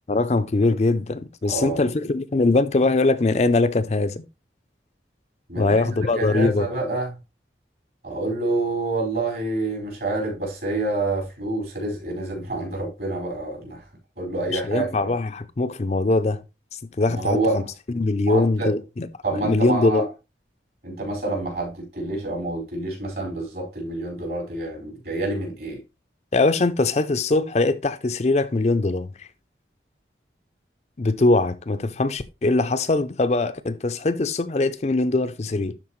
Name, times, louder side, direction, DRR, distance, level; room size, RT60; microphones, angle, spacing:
voice 1, 0.1-4.2 5.6-6.7 14.5-16.4 17.0-17.6 17.9-19.1 19.4-20.1 26.3-29.3 31.0-35.7, left 2 dB, 40° left, 0.5 m, -22 dB
voice 2, 1.4-1.8 5.5-7.1 8.0-13.8 14.2-15.1 17.1-17.6 18.3-18.7 19.2-20.0 20.8-25.8, right 2 dB, 60° right, 5.0 m, -27 dB
12.0 x 4.4 x 3.1 m
head